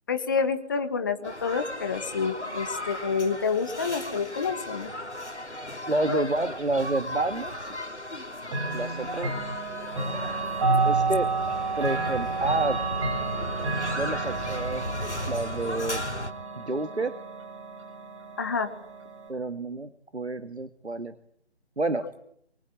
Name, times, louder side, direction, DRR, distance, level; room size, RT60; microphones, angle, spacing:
voice 1, 0.1-4.9 6.1-6.2 18.4-18.7, left 5 dB, 20° left, 8 dB, 1.5 m, -28 dB
sound 1, 1.2-16.3, left 1 dB, 85° left, 3.1 m, -36 dB
voice 2, 5.9-7.7 8.7-9.5 10.8-11.3 11.8-12.9 14.0-16.0 16.6-17.1 19.3-21.2 21.8-22.1, right 2 dB, 75° right, 10 dB, 1.9 m, -29 dB
Chime / Clock, 8.5-19.3, right 3 dB, 25° right, 6.4 m, -30 dB
25.5 x 23.5 x 8.7 m, 0.68 s
figure-of-eight pair, 155°, 33 cm